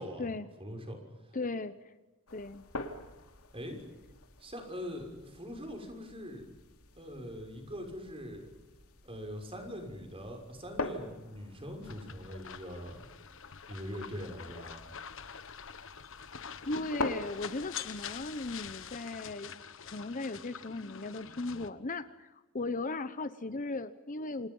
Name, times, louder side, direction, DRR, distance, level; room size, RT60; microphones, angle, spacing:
voice 1, 0.6-1.4 3.5-3.8 4.4-6.5 7.0-8.5 9.0-13.1 13.7-14.8, equal, 25° right, 4 dB, 6.1 m, -42 dB
voice 2, 1.3-1.9 2.3-2.6 16.6-24.5, left 2 dB, 35° left, 12 dB, 0.9 m, -37 dB
sound 1, 2.3-19.0, left 2 dB, 80° left, 2.7 m, -45 dB
sound 2, 11.8-21.7, left 7 dB, 60° left, 1.4 m, -46 dB
29.0 x 28.0 x 5.5 m, 1.1 s
head